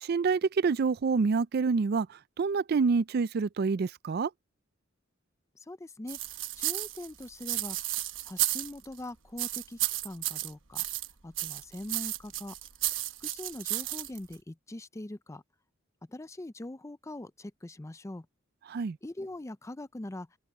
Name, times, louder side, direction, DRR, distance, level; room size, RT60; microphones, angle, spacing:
voice 1, 0.0-2.1 2.4-4.3 18.7-19.0, right 5 dB, 55° right, 0.4 m, -27 dB
voice 2, 5.7-6.2 6.6-7.9 8.3-10.8 11.2-12.5 13.2-15.4 16.1-18.3 19.0-20.3, left 1 dB, 15° left, 0.5 m, -42 dB
sound 1, 6.1-9.0 9.4-11.1 11.4-14.3, right 15 dB, 80° right, 1.1 m, -33 dB
open air
head